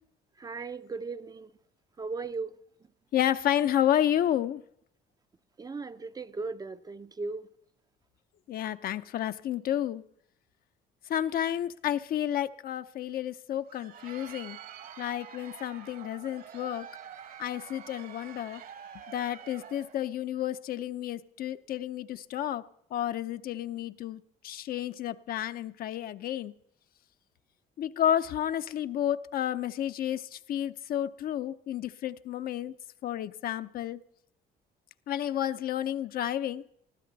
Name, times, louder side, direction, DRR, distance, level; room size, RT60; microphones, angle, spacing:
voice 1, 0.4-1.5 2.0-2.6 5.6-7.5, right 4 dB, 20° right, 0.6 m, -37 dB
voice 2, 3.1-4.6 8.5-10.0 11.1-14.6 15.0-16.9 17.4-18.6 19.1-22.7 22.9-26.5 27.8-32.7 33.0-34.0 35.1-36.6, left 11 dB, 60° left, 0.7 m, -31 dB
Crowd, 13.5-20.1, right 9 dB, 60° right, 1.7 m, -47 dB
20.5 x 14.0 x 4.1 m
cardioid pair, 110°, 17 cm